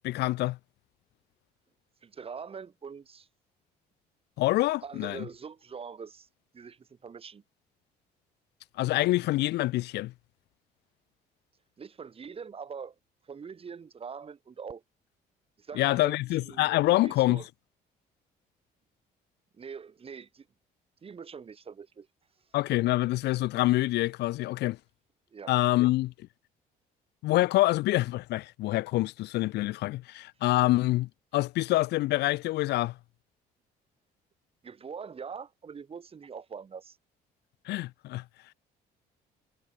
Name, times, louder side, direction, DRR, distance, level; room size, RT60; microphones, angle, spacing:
voice 1, 0.0-0.6 4.4-5.2 8.8-10.1 15.7-17.4 22.5-24.8 25.5-26.1 27.2-32.9 37.7-38.2, left 17 dB, 80° left, 2.5 m, -26 dB
voice 2, 2.0-3.3 4.8-6.3 6.5-7.4 11.8-12.9 13.3-14.8 15.6-16.7 17.0-17.5 19.5-20.5 21.0-22.1 25.3-25.5 34.6-37.0, right 6 dB, 35° right, 6.1 m, -43 dB
cardioid pair, 110°, 17 cm